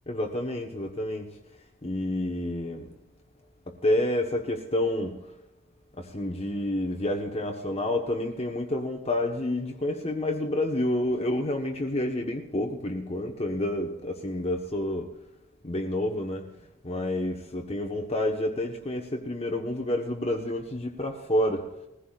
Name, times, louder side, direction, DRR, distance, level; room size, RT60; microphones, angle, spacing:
voice 1, 0.1-1.3 1.8-2.9 3.7-5.2 6.0-15.1 15.6-16.5 16.8-21.6, left 1 dB, 30° left, 2 dB, 1.3 m, -29 dB
20.0 x 16.0 x 2.5 m, 0.89 s
head